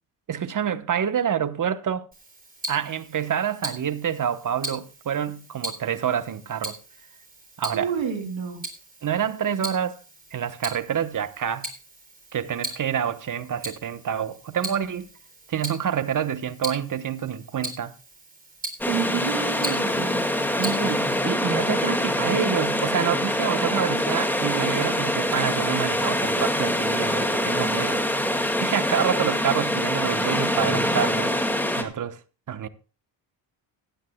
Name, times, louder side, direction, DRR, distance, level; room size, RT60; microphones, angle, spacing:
voice 1, 0.3-2.1 2.7-6.7 7.6-7.9 9.0-10.0 10.3-11.7 12.3-15.1 15.5-17.9 20.6-31.3 31.7-32.2 32.5-32.7, right 8 dB, 40° right, 1.1 m, -27 dB
Tick-tock, 2.1-21.2, right 1 dB, 20° right, 3.5 m, -39 dB
voice 2, 7.7-8.6 18.9-20.2, right 7 dB, 75° right, 3.1 m, -29 dB
sound 1, 18.8-31.8, left 1 dB, 5° left, 2.0 m, -24 dB
17.0 x 12.0 x 2.3 m
cardioid pair, 80°, 46 cm